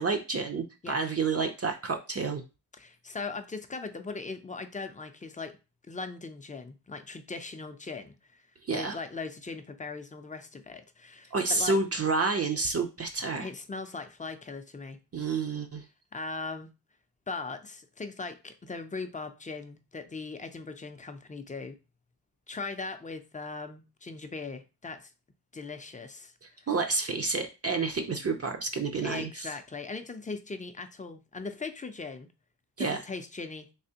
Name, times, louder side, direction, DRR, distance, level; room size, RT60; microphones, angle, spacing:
voice 1, 0.0-2.4 8.6-9.0 11.3-13.5 15.1-15.8 26.7-29.5 32.8-33.0, right 4 dB, 40° right, 0.5 m, -29 dB
voice 2, 2.7-5.5 5.9-8.5 8.7-11.8 13.4-15.0 16.1-16.7 17.3-21.8 22.5-25.1 25.5-26.3 29.0-32.3 32.8-33.7, left 4 dB, 20° left, 0.4 m, -39 dB
3.4 x 3.2 x 2.8 m
wide cardioid pair, 105°, 40 cm